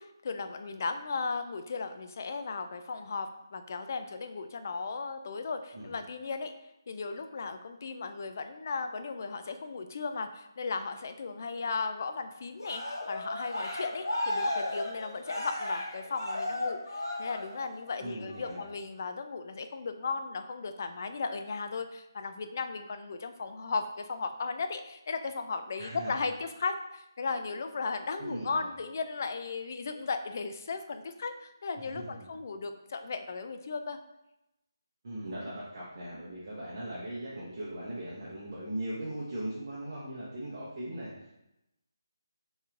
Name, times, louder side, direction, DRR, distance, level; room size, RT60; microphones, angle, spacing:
voice 1, 0.0-6.5 6.9-34.0, left 4 dB, 40° left, 8 dB, 0.3 m, -36 dB
Cheering, 12.6-17.8 18.3-18.7, left 1 dB, 75° left, 1.1 m, -35 dB
voice 2, 18.0-18.6 25.8-26.2 28.2-28.7 31.8-32.0 35.0-41.4, right 1 dB, 40° right, -7 dB, 0.9 m, -39 dB
5.5 x 3.0 x 2.5 m, 0.90 s
figure-of-eight pair, 150°, 2 cm